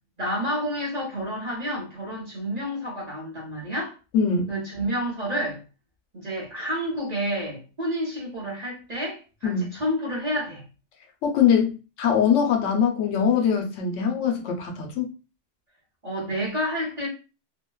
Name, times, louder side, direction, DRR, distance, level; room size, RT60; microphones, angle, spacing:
voice 1, 0.2-3.9 4.5-5.6 6.1-10.6 16.0-17.1, equal, 35° right, 1.0 m, -29 dB
voice 2, 4.1-4.5 9.4-9.7 11.2-15.1, left 7 dB, 80° left, 1.0 m, -22 dB
2.8 x 2.2 x 2.2 m
omnidirectional pair, 1.3 m